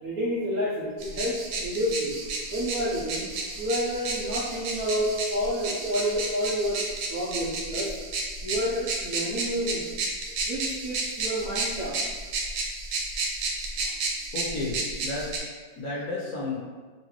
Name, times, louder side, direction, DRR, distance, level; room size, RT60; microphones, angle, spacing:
voice 1, 0.0-2.2 2.5-3.3 3.6-8.0 8.4-9.8 10.4-12.0, equal, 65° right, -6 dB, 1.0 m, -29 dB
sound 1, 1.0-15.4, right 3 dB, 90° right, 1.4 m, -32 dB
voice 2, 14.3-15.3 15.8-16.6, left 2 dB, 65° left, -6 dB, 1.0 m, -32 dB
4.0 x 3.0 x 3.0 m, 1.4 s
omnidirectional pair, 2.1 m